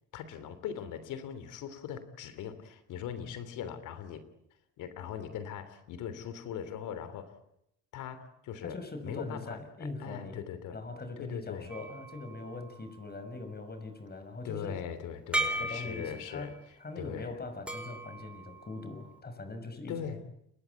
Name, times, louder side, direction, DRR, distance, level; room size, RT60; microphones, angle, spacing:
voice 1, 0.1-4.3 4.8-7.3 7.9-8.8 9.0-10.8 11.2-11.7 14.4-16.5 16.9-17.3 19.9-20.2, left 8 dB, 90° left, 12 dB, 3.3 m, -40 dB
voice 2, 8.6-10.4 10.7-14.8 15.6-20.2, left 2 dB, 30° left, 8 dB, 6.3 m, -42 dB
sound 1, 11.7-13.4 15.3-16.6 17.7-19.2, right 1 dB, 5° right, 4.8 m, -37 dB
29.5 x 23.0 x 8.4 m, 0.80 s
cardioid pair, 90°, 30 cm